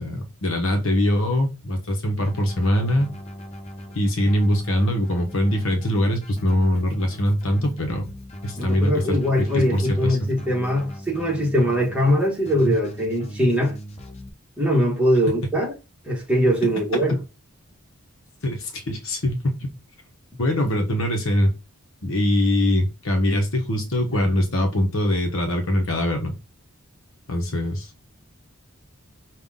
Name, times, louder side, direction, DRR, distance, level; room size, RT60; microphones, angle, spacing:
voice 1, 0.0-3.1 3.9-8.1 8.4-10.3 18.4-19.7 20.4-21.5 22.0-26.3 27.3-27.9, left 1 dB, 65° left, 1.0 m, -22 dB
Keyboard (musical), 2.2-14.3, equal, 30° left, 0.7 m, -39 dB
voice 2, 8.6-13.7 14.6-15.7 16.0-17.2, equal, 5° right, 1.4 m, -21 dB
5.6 x 2.5 x 3.6 m
head